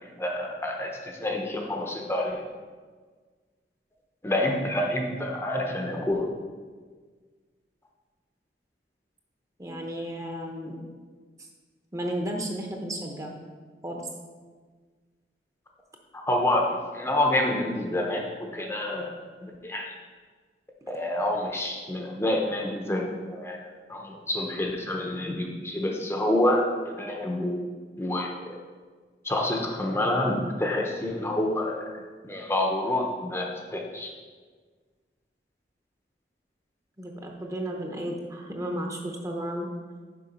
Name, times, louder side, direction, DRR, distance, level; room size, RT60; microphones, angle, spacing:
voice 1, 0.0-2.4 4.2-6.2 16.1-19.1 19.4-19.9 20.9-23.6 23.9-27.7 28.0-28.6 29.2-34.1, left 1 dB, 15° left, 1 dB, 0.7 m, -28 dB
voice 2, 9.6-10.8 11.9-13.3 13.8-14.1 37.0-39.7, right 1 dB, 20° right, 1 dB, 0.8 m, -33 dB
6.9 x 5.2 x 5.2 m, 1.5 s
head